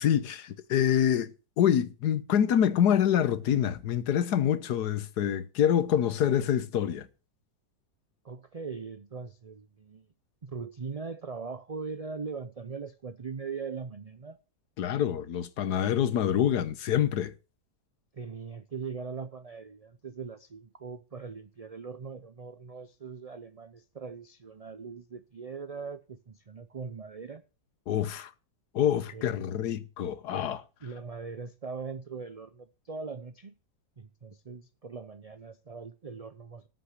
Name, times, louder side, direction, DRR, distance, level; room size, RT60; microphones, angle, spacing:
voice 1, 0.0-7.1 14.8-17.3 27.9-28.3 28.7-30.6, left 9 dB, 90° left, 1.5 m, -26 dB
voice 2, 8.2-10.1 10.4-14.4 18.1-27.4 29.1-29.4 30.8-33.5 34.0-36.7, right 5 dB, 50° right, 0.4 m, -40 dB
13.5 x 6.1 x 8.1 m
omnidirectional pair, 1.7 m